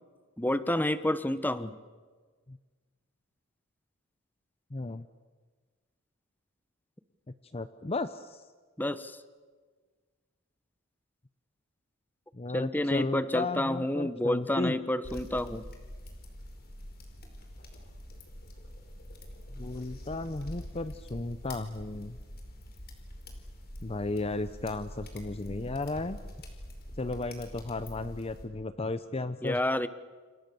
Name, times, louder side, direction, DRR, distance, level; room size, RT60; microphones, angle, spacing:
voice 1, 0.4-1.8 8.8-9.2 12.5-15.7 29.4-29.9, left 1 dB, 10° left, 13 dB, 1.1 m, -29 dB
voice 2, 4.7-5.1 7.5-8.4 12.3-14.7 19.6-22.2 23.8-26.2 27.0-29.6, left 2 dB, 30° left, 12 dB, 0.8 m, -34 dB
sound 1, 15.0-28.5, equal, 45° left, 4.7 m, -45 dB
29.0 x 28.5 x 7.0 m, 1.5 s
head